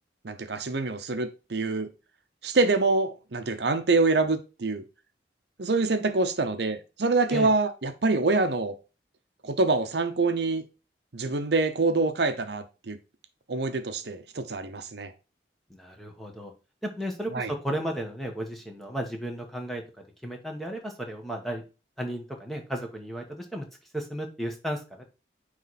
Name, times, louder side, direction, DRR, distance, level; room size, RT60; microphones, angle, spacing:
voice 1, 0.2-1.9 2.4-4.8 5.6-8.7 9.4-10.6 11.1-13.0 13.5-15.1 17.3-17.5, right 3 dB, 70° right, 0.8 m, -25 dB
voice 2, 15.7-16.5 16.8-21.6 22.0-23.7 23.9-25.0, right 1 dB, ahead, 1.2 m, -34 dB
9.3 x 3.2 x 4.1 m
head